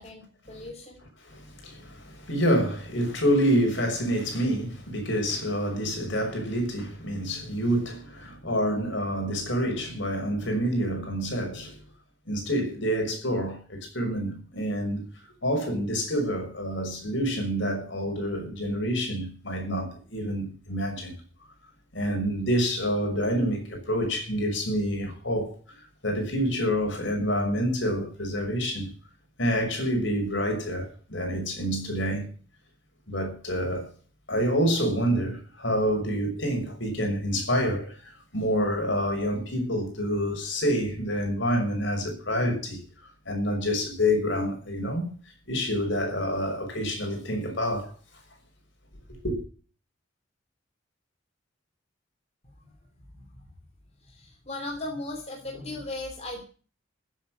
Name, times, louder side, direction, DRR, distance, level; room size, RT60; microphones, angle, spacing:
voice 1, 0.0-1.0 52.6-52.7 53.0-53.4 54.0-56.4, left 2 dB, 30° left, 2.7 m, -38 dB
voice 2, 1.2-11.8 12.3-15.0 15.4-21.1 21.9-28.9 29.4-32.3 33.1-33.9 34.3-42.8 43.3-45.1 45.5-47.9 49.2-49.4, equal, 65° left, 6.1 m, -27 dB
15.0 x 8.4 x 7.8 m
head